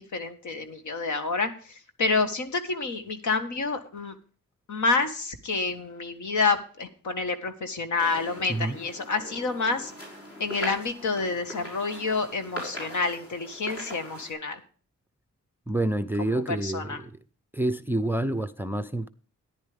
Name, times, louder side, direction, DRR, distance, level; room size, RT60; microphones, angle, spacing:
voice 1, 0.0-4.2 4.7-9.9 10.4-14.6 16.3-17.0, left 4 dB, 70° left, 1.7 m, -28 dB
sound 1, 8.0-14.3, equal, 50° left, 6.1 m, -40 dB
voice 2, 15.7-17.2 17.5-19.1, right 1 dB, 5° right, 0.4 m, -28 dB
13.5 x 10.5 x 3.4 m
wide cardioid pair, 170°, 30 cm